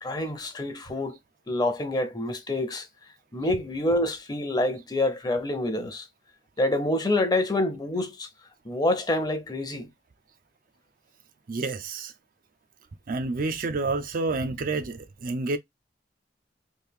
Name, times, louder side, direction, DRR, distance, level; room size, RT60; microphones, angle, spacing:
voice 1, 0.0-1.2 1.5-2.9 3.3-6.1 6.6-8.3 8.6-9.9, left 1 dB, 25° left, 0.7 m, -27 dB
voice 2, 11.5-12.1 13.1-15.6, right 3 dB, 50° right, 0.5 m, -29 dB
3.3 x 2.6 x 3.4 m
head